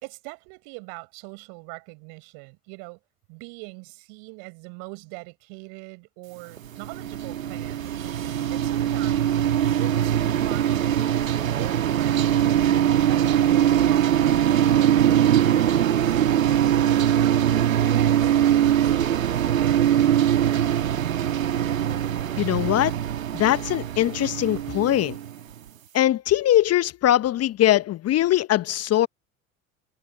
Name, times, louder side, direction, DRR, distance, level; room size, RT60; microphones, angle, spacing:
voice 1, 0.0-3.0 3.3-7.9 8.5-9.4 9.7-12.3 13.1-18.3 18.8-20.6, right 36 dB, 60° right, 5.6 m, -42 dB
sound 1, 6.6-25.6, right 10 dB, 80° right, 1.3 m, -22 dB
voice 2, 22.4-22.9 23.3-25.2 25.9-29.1, left 13 dB, 40° left, 1.0 m, -21 dB
figure-of-eight pair, 65°, 40 cm